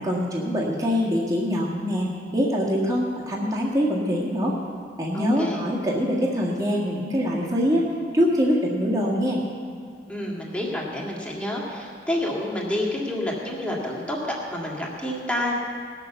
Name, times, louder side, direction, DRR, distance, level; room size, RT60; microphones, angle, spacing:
voice 1, 0.0-2.1 2.3-4.6 5.0-7.9 8.1-9.4, equal, 20° right, -5 dB, 1.7 m, -24 dB
voice 2, 5.1-5.7 10.1-15.5, left 1 dB, 5° left, -3 dB, 2.2 m, -29 dB
19.0 x 6.8 x 7.0 m, 2.1 s
head